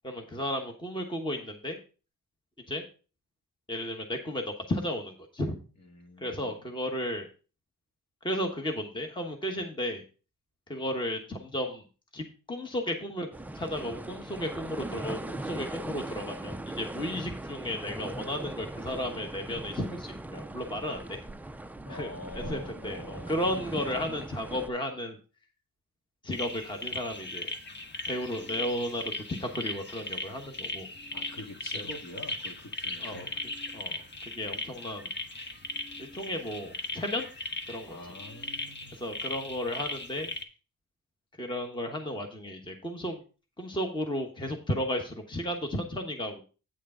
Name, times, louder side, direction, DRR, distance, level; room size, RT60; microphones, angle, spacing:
voice 1, 0.0-1.8 2.7-2.8 3.7-5.6 6.2-7.3 8.2-10.0 10.7-11.8 12.1-13.3 13.5-21.2 21.9-25.2 26.2-27.5 28.1-29.1 29.4-30.9 31.7-31.8 33.0-33.3 33.7-35.1 36.0-37.3 37.7-38.0 38.9-40.3 41.4-43.2 43.6-46.4, left 1 dB, 15° left, 3 dB, 1.2 m, -34 dB
voice 2, 5.8-6.6 21.8-23.4 31.1-33.4 37.8-39.0, left 1 dB, 55° left, 3 dB, 2.0 m, -45 dB
sound 1, 13.3-24.7, right 1 dB, 5° right, 0.3 m, -40 dB
sound 2, 26.3-40.4, left 2 dB, 35° left, 1.2 m, -38 dB
8.9 x 6.5 x 3.7 m, 0.35 s
cardioid pair, 120°, 33 cm